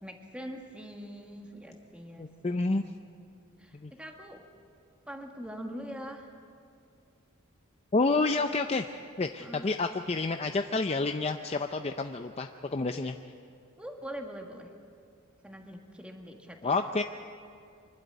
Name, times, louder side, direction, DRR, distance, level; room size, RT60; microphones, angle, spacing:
voice 1, 0.0-3.0 3.6-4.4 5.1-6.3 9.4-9.7 13.8-14.7 15.4-16.9, equal, 5° right, 2 dB, 1.6 m, -43 dB
voice 2, 2.2-2.8 3.7-3.9 7.9-13.2 16.6-17.0, left 3 dB, 30° left, 6 dB, 0.5 m, -29 dB
25.0 x 12.0 x 9.4 m, 2.4 s
head